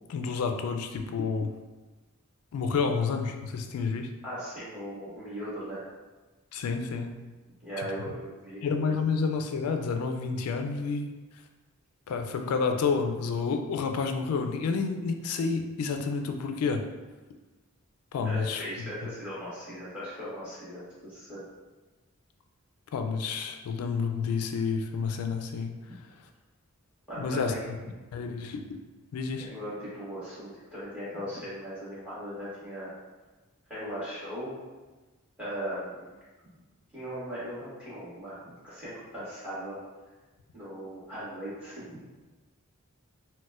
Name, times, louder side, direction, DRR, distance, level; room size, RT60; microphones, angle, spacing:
voice 1, 0.1-1.5 2.5-4.1 6.5-7.2 8.6-11.2 12.1-16.8 18.1-18.9 22.9-25.7 27.2-27.5 28.1-28.6 29.1-29.5, left 5 dB, 90° left, 5 dB, 0.3 m, -29 dB
voice 2, 4.2-5.8 7.6-8.6 18.2-21.4 27.1-27.7 29.4-32.9 33.7-34.6 35.4-36.0 36.9-39.8 40.5-41.8, equal, 5° right, -11 dB, 1.4 m, -38 dB
3.9 x 2.2 x 2.4 m, 1.2 s
head